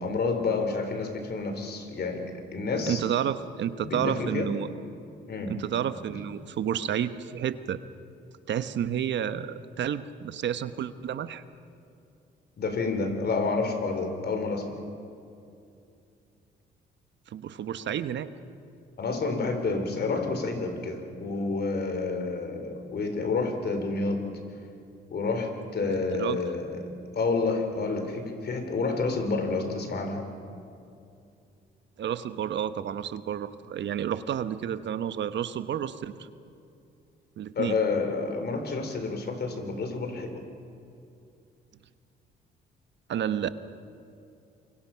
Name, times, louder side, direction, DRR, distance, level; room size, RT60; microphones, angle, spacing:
voice 1, 0.0-2.3 2.5-3.0 3.8-4.5 5.3-5.6 12.6-14.8 19.0-24.3 25.1-26.9 27.1-30.2 37.6-40.4, left 3 dB, 55° left, 6 dB, 3.7 m, -29 dB
voice 2, 2.9-4.7 5.5-7.8 8.5-11.4 17.3-18.3 25.9-26.4 32.0-36.3 37.4-37.8 43.1-43.5, right 9 dB, 65° right, 12 dB, 1.0 m, -30 dB
26.5 x 24.0 x 5.8 m, 2.6 s
cardioid pair, 90°, 20 cm